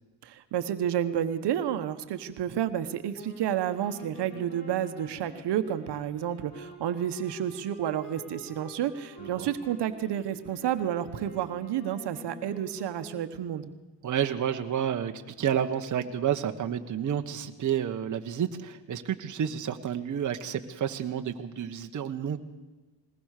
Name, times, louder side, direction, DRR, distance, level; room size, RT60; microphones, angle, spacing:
voice 1, 0.2-13.7, right 10 dB, 65° right, 9 dB, 1.3 m, -30 dB
sound 1, 3.1-13.5, left 1 dB, 70° left, 5.6 m, -48 dB
voice 2, 14.0-22.4, right 9 dB, 45° right, 5 dB, 1.2 m, -30 dB
21.0 x 19.0 x 6.6 m, 1.2 s
cardioid pair, 110°, 43 cm